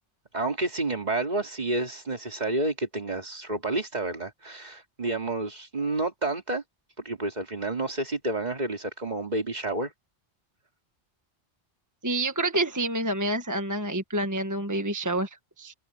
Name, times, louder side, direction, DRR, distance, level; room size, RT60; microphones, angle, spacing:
voice 1, 0.3-6.6 7.0-9.9, right 2 dB, 40° right, 2.6 m, -30 dB
voice 2, 12.0-15.7, right 1 dB, 15° right, 1.3 m, -28 dB
omnidirectional pair, 1.2 m